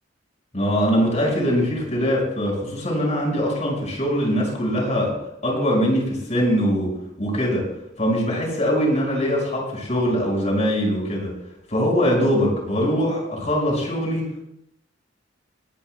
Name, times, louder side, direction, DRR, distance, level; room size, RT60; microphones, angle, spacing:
voice 1, 0.5-5.1 5.4-6.9 7.2-7.6 8.0-11.3 11.7-14.3, equal, 40° left, -1 dB, 5.5 m, -22 dB
21.5 x 14.5 x 2.3 m, 0.80 s
head